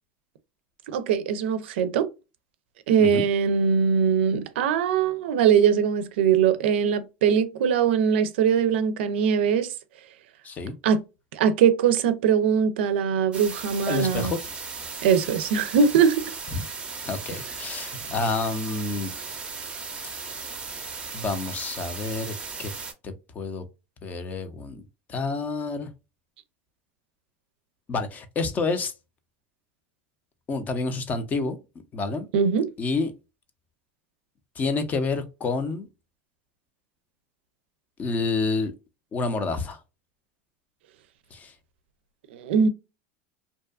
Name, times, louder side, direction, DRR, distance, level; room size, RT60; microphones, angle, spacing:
voice 1, 0.9-2.1 2.9-9.7 10.8-11.0 11.3-14.4 15.0-16.2 32.3-32.7 42.3-42.7, right 7 dB, 85° right, 0.4 m, -21 dB
sound 1, 13.3-22.9, right 4 dB, 20° right, 0.6 m, -36 dB
voice 2, 13.9-14.4 16.5-16.6 17.1-19.1 21.1-22.3 22.6-22.7 23.0-23.6 24.0-24.8 25.1-25.9 27.9-28.9 30.5-31.6 31.9-32.3 32.8-33.1 34.6-35.9 38.0-38.7 39.1-39.8 41.3-41.5, left 3 dB, 30° left, 0.5 m, -28 dB
2.6 x 2.3 x 2.3 m
supercardioid pair, 125°, 6 cm